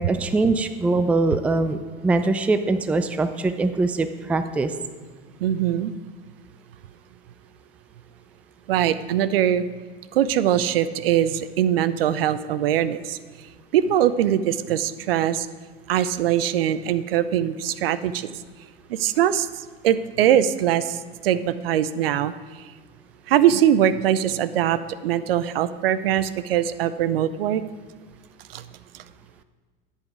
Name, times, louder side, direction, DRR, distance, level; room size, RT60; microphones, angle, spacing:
voice 1, 0.0-4.7, right 3 dB, 5° right, 10 dB, 0.4 m, -22 dB
voice 2, 5.4-5.9 8.7-9.6 10.1-13.2 13.7-15.5 15.9-18.3 18.9-19.5 19.8-22.3 23.3-27.6 28.5-28.6, right 10 dB, 70° right, 14 dB, 0.6 m, -22 dB
10.5 x 8.3 x 4.8 m, 1.4 s
hypercardioid pair, 85°, 30 cm